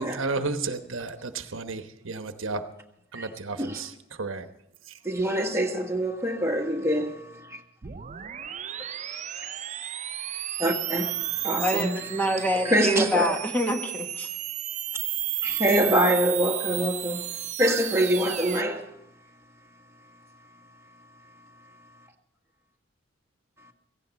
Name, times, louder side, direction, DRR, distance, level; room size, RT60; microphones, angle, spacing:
voice 1, 0.0-2.6 3.1-4.5 4.9-5.0, right 3 dB, 85° right, 1.1 m, -33 dB
voice 2, 5.0-7.6 10.6-11.9 12.6-13.3 15.4-17.3 17.6-18.9, right 1 dB, 15° right, 1.5 m, -25 dB
sound 1, 7.8-18.6, right 12 dB, 35° right, 0.5 m, -33 dB
voice 3, 11.6-14.3, equal, 10° left, 1.2 m, -26 dB
17.0 x 15.5 x 4.2 m
head